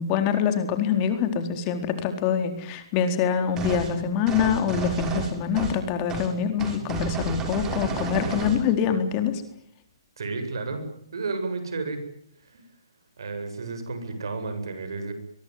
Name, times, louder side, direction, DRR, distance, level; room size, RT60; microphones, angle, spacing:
voice 1, 0.0-9.4, left 7 dB, 30° left, 8 dB, 4.1 m, -25 dB
sound 1, 3.6-3.9 4.3-5.8 6.1-6.3 6.6-8.6, right 4 dB, 20° right, 5.8 m, -31 dB
voice 2, 10.2-10.8 11.1-12.0 12.5-12.6 13.2-15.1, right 3 dB, 70° right, 9 dB, 8.0 m, -32 dB
23.5 x 23.5 x 9.5 m, 0.72 s
hypercardioid pair, 140°, 2 cm